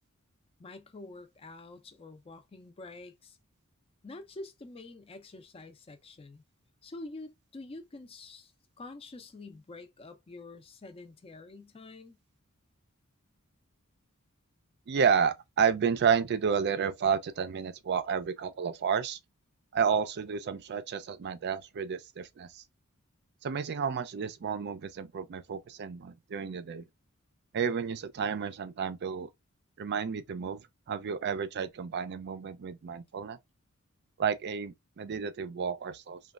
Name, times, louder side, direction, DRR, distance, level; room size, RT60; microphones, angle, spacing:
voice 1, 0.6-3.4 4.0-6.4 6.8-8.5 8.8-12.2, left 2 dB, 25° left, 0.4 m, -47 dB
voice 2, 14.9-19.2 19.7-22.6 23.4-26.9 27.5-29.3 29.8-30.6 30.9-33.4 34.2-36.2, right 6 dB, 50° right, 0.4 m, -31 dB
3.1 x 2.3 x 2.3 m
head